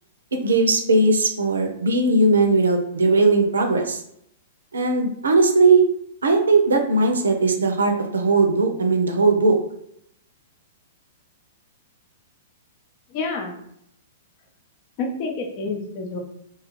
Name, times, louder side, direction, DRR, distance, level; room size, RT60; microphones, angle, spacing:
voice 1, 0.3-4.0 4.7-5.8 6.2-9.5, right 3 dB, 80° right, 4 dB, 0.5 m, -18 dB
voice 2, 13.1-13.6 15.0-16.2, left 3 dB, 45° left, 2 dB, 0.6 m, -28 dB
2.8 x 2.4 x 3.0 m, 0.73 s
hypercardioid pair, 110°, 0 cm